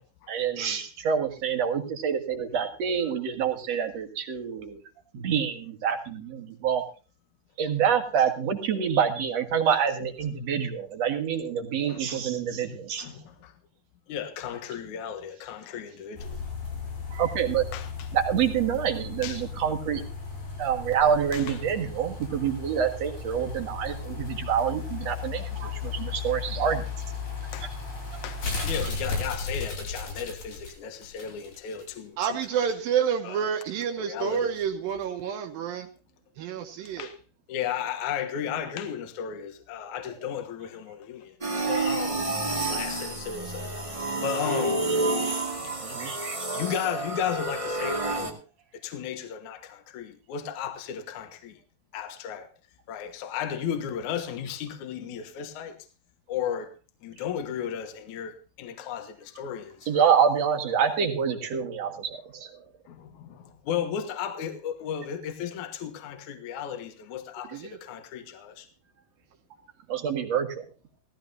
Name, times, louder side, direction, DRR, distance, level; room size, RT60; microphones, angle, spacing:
voice 1, 0.3-4.8 5.1-6.8 7.6-13.0 17.1-17.6 18.1-20.0 20.6-26.9 45.8-46.4 59.9-62.5 69.9-70.6, right 8 dB, 50° right, 2.5 m, -27 dB
voice 2, 11.9-12.2 13.0-13.5 14.1-16.4 17.7-18.1 19.2-19.5 21.3-21.6 27.5-27.7 28.2-32.2 33.2-33.4 34.0-34.5 37.0-37.2 37.5-41.4 41.6-42.4 42.7-43.8 44.2-44.9 46.5-48.4 48.8-51.6 51.9-52.5 52.9-55.8 56.3-56.7 57.0-60.1 62.9-68.7, left 8 dB, 65° left, 2.6 m, -34 dB
sound 1, 16.2-31.8 32.2-32.3, left 5 dB, 90° left, 7.5 m, -35 dB
voice 3, 32.2-35.9 36.4-37.1 67.5-67.8, right 8 dB, 75° right, 2.7 m, -29 dB
sound 2, 41.4-48.3, right 2 dB, 15° right, 1.1 m, -29 dB
17.5 x 14.5 x 2.7 m
omnidirectional pair, 4.1 m